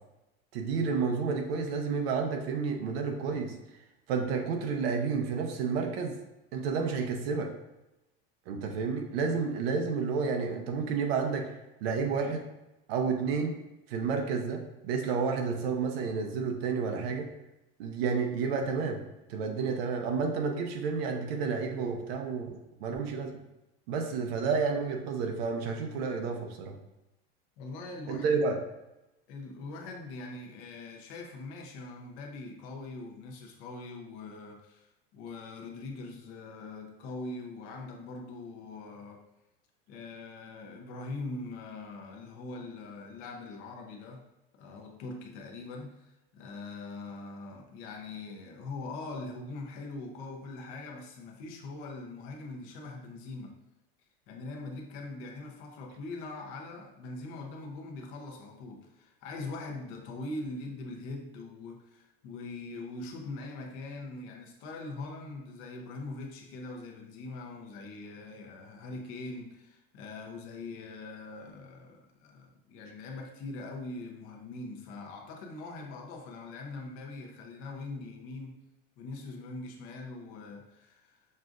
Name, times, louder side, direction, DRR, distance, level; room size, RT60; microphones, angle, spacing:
voice 1, 0.5-3.5 4.1-6.2 6.5-7.5 8.5-11.5 11.8-12.5 12.9-13.6 13.9-17.3 17.8-19.0 19.3-23.4 23.9-26.8 28.1-28.6, right 5 dB, 85° right, 3 dB, 0.7 m, -30 dB
voice 2, 27.6-28.4 29.3-39.2 39.9-44.3 44.6-53.6 54.3-78.6 79.0-81.3, left 3 dB, 45° left, 1 dB, 0.7 m, -42 dB
6.3 x 2.5 x 2.4 m, 0.94 s
cardioid pair, 175°, 29 cm